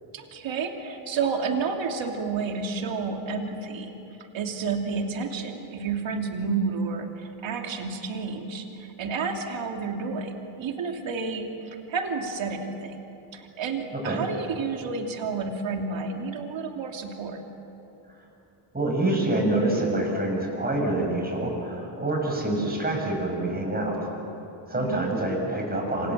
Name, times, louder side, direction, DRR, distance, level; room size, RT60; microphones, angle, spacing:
voice 1, 0.1-3.9 4.3-13.0 13.3-17.4 24.7-25.0, right 4 dB, 65° right, 3 dB, 3.1 m, -30 dB
voice 2, 13.9-14.3 18.7-24.1 24.7-26.1, right 1 dB, 20° right, 1 dB, 7.0 m, -26 dB
27.5 x 27.0 x 7.6 m, 2.9 s
cardioid pair, 130°, 49 cm